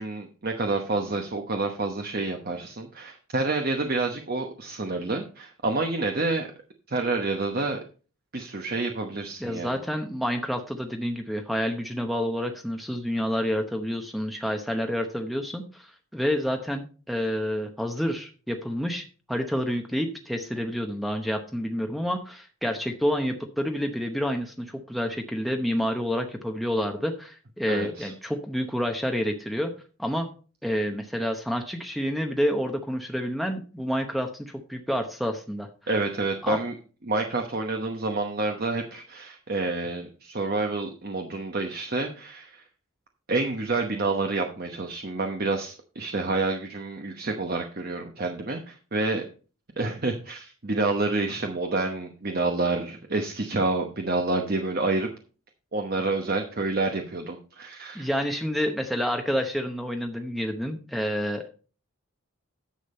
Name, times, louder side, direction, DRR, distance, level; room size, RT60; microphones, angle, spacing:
voice 1, 0.0-6.5 6.9-7.8 8.3-9.8 27.7-28.1 35.9-36.7 37.1-42.6 43.3-49.3 49.8-55.1 55.7-58.1, right 3 dB, 45° right, 4 dB, 0.9 m, -28 dB
voice 2, 9.4-29.7 30.0-30.3 30.6-35.7 36.4-36.6 57.9-61.5, equal, ahead, 3 dB, 0.8 m, -29 dB
10.5 x 7.2 x 4.3 m, 0.37 s
head